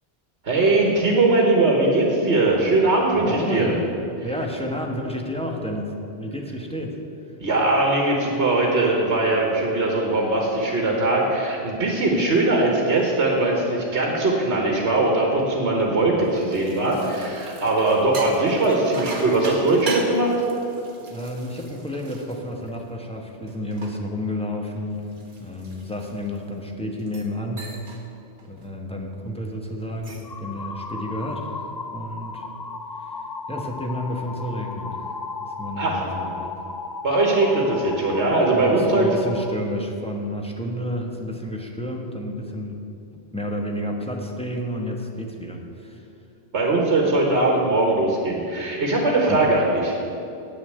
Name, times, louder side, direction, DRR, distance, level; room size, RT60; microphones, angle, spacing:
voice 1, 0.4-3.7 7.4-20.3 35.8-36.0 37.0-39.1 46.5-49.9, right 2 dB, 70° right, -1 dB, 1.6 m, -20 dB
voice 2, 3.1-3.8 4.2-7.0 7.2-7.3 21.1-25.1 25.4-27.7 28.5-31.6 31.9-32.5 32.9-33.2 33.5-36.5 38.5-42.8 43.1-46.1 49.3-49.5, left 1 dB, 5° left, 0 dB, 1.0 m, -31 dB
sound 1, 16.2-23.0 23.5-26.5 27.0-27.3 27.6-28.0 28.4-28.7 29.8-30.4, right 3 dB, 50° right, 1.3 m, -39 dB
sound 2, 30.2-39.6, left 4 dB, 35° left, 0.3 m, -35 dB
9.0 x 6.7 x 7.9 m, 2.7 s
omnidirectional pair, 1.1 m